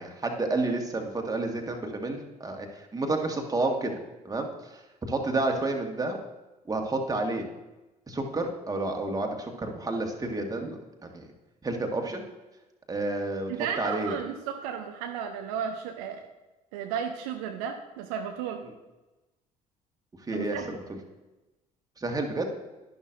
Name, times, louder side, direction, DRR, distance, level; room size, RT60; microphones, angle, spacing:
voice 1, 0.0-4.0 4.2-4.5 5.1-6.2 6.7-7.5 8.1-11.3 11.6-12.2 12.9-13.5 13.8-14.1 20.3-20.6 22.0-22.5, right 2 dB, 20° right, 3 dB, 1.7 m, -30 dB
voice 2, 13.5-16.3 16.7-18.7 20.3-20.8, right 8 dB, 65° right, 5 dB, 0.7 m, -34 dB
11.5 x 11.0 x 2.6 m, 1.1 s
figure-of-eight pair, 50°, 20 cm